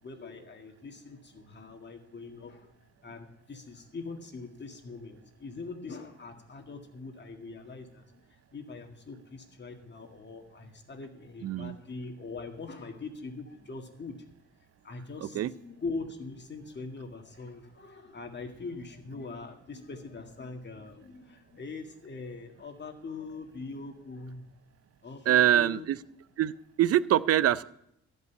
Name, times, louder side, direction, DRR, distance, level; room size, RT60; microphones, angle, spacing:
voice 1, 0.0-2.7 3.0-14.3 14.8-24.5 25.0-25.9, left 3 dB, 35° left, 4 dB, 2.0 m, -42 dB
voice 2, 11.4-11.7 15.2-15.5 25.3-26.0 26.4-26.5 26.8-27.6, right 11 dB, 55° right, 18 dB, 0.5 m, -24 dB
13.5 x 5.5 x 8.1 m, 0.75 s
cardioid pair, 90°, 30 cm